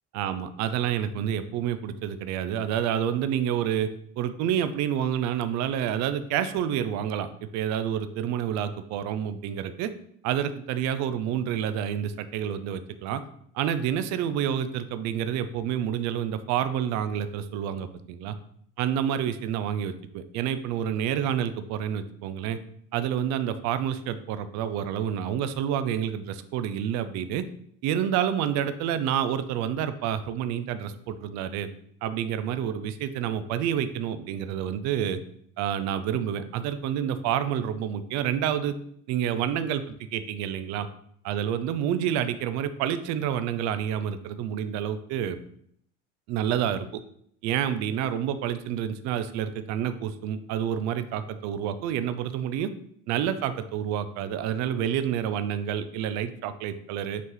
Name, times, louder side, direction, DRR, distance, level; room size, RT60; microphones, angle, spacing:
voice 1, 0.1-3.9 4.2-9.9 10.2-13.2 13.5-18.3 18.8-22.6 22.9-27.4 27.8-31.7 32.0-35.2 35.6-38.7 39.1-39.8 40.1-40.9 41.2-45.4 46.3-47.0 47.4-52.7 53.1-57.2, right 9 dB, 65° right, 11 dB, 0.6 m, -28 dB
8.2 x 3.1 x 3.9 m, 0.68 s
cardioid pair, 120°, 30 cm